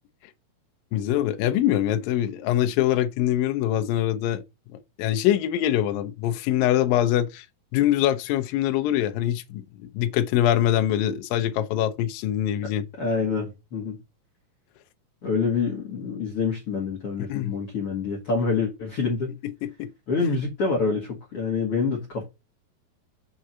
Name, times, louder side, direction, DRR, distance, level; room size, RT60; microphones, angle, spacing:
voice 1, 0.9-4.4 5.0-7.5 7.7-12.8 17.3-17.6 19.4-19.9, left 12 dB, 75° left, 2.3 m, -24 dB
voice 2, 13.0-14.0 15.2-19.3 20.1-22.2, left 4 dB, 45° left, 2.1 m, -26 dB
6.2 x 3.8 x 5.5 m
omnidirectional pair, 4.5 m